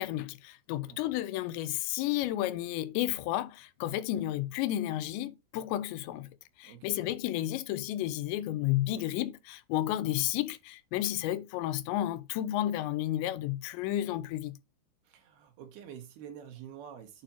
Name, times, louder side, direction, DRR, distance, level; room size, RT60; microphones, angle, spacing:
voice 1, 0.0-6.3 6.6-14.6, left 14 dB, 85° left, 2.9 m, -32 dB
voice 2, 6.6-7.0 15.0-17.2, right 9 dB, 70° right, 3.1 m, -47 dB
8.8 x 4.9 x 2.9 m
omnidirectional pair, 5.1 m